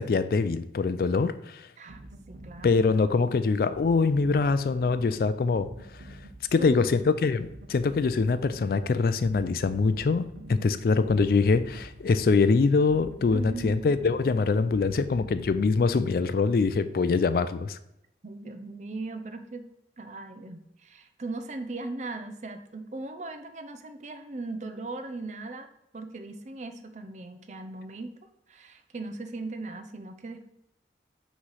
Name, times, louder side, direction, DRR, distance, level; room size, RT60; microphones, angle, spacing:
voice 1, 0.0-1.7 2.6-5.7 6.5-17.8, left 4 dB, 55° left, 13 dB, 0.3 m, -24 dB
voice 2, 1.8-2.9 6.6-6.8 13.3-13.9 18.2-19.7 20.0-25.7 25.9-28.1 28.5-30.5, right 2 dB, 40° right, 8 dB, 0.5 m, -38 dB
sound 1, 1.9-16.5, right 1 dB, 70° right, 0.9 m, -47 dB
6.1 x 3.1 x 5.6 m, 0.82 s
head